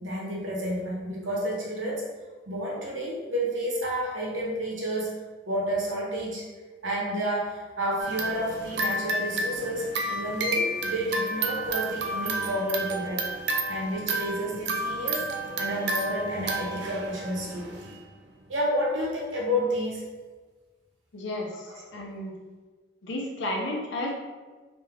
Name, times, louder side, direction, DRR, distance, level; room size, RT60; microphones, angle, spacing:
voice 1, 0.0-2.0 2.5-5.2 5.5-6.5 6.8-13.3 13.7-15.3 15.6-17.7 18.5-20.0 21.7-21.8, equal, 85° right, -4 dB, 1.1 m, -30 dB
sound 1, 8.0-18.0, right 2 dB, 60° right, 0.5 m, -31 dB
voice 2, 21.1-22.3 23.0-24.1, left 1 dB, 70° left, -1 dB, 0.7 m, -32 dB
3.4 x 2.9 x 3.5 m, 1.4 s
head